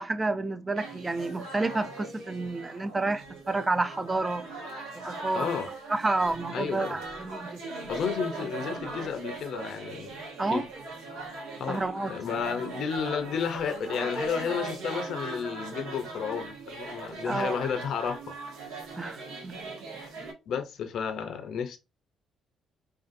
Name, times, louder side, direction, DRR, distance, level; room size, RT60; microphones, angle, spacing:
voice 1, 0.0-4.4 5.0-5.6 5.9-7.6 10.4-10.6 11.7-12.1 17.2-17.6 19.0-19.5, right 3 dB, 20° right, 0.4 m, -30 dB
sound 1, 0.7-20.3, right 3 dB, 85° right, 0.8 m, -39 dB
voice 2, 5.3-5.7 6.5-7.0 7.9-10.2 10.5-10.6 11.6-18.2 20.5-21.8, left 7 dB, 65° left, 0.5 m, -32 dB
2.6 x 2.4 x 2.4 m
supercardioid pair, 75°, 0 cm